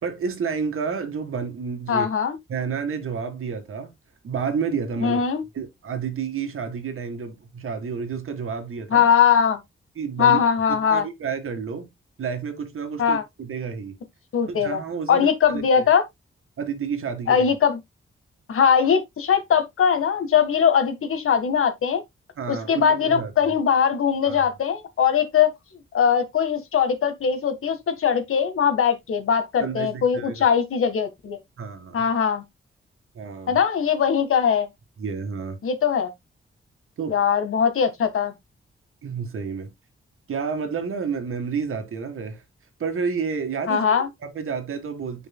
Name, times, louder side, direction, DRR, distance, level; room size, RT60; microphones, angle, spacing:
voice 1, 0.0-2.1 2.5-3.9 4.2-5.2 5.5-9.1 10.0-10.4 10.7-11.9 12.2-14.0 14.5-15.9 16.6-17.5 22.4-23.5 24.3-24.5 29.6-30.5 31.6-32.1 33.2-33.6 35.0-35.6 37.0-37.2 39.0-39.7 40.3-42.4 42.8-43.9 44.2-45.3, right 6 dB, 80° right, 1.9 m, -30 dB
voice 2, 1.9-2.3 5.0-5.4 8.9-9.6 10.2-11.0 13.0-13.2 14.3-14.8 15.1-16.0 17.3-17.8 18.5-22.0 22.5-25.5 25.9-31.4 31.9-32.4 33.5-34.7 35.6-36.1 37.1-38.3 43.7-44.1, left 7 dB, 85° left, 1.7 m, -21 dB
9.6 x 5.4 x 2.2 m
wide cardioid pair, 175°, 21 cm